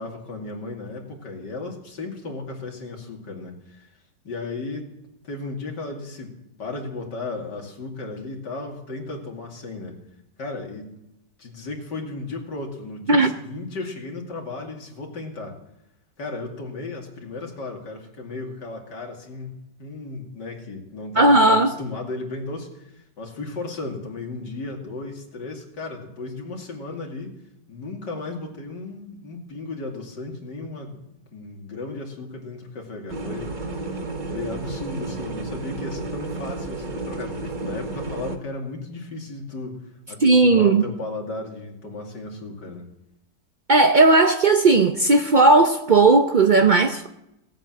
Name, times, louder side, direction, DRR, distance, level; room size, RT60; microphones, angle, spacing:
voice 1, 0.0-3.9 4.2-4.9 5.2-10.0 10.4-10.9 11.4-15.5 16.2-27.3 27.7-31.0 31.3-33.5 33.9-34.0 34.3-42.9, left 3 dB, 75° left, 3.1 m, -35 dB
voice 2, 21.2-21.7 40.2-40.8 43.7-47.1, right 3 dB, 70° right, 0.4 m, -16 dB
sound 1, 33.1-38.4, right 3 dB, 30° right, 1.0 m, -32 dB
17.5 x 8.9 x 7.6 m
omnidirectional pair, 1.9 m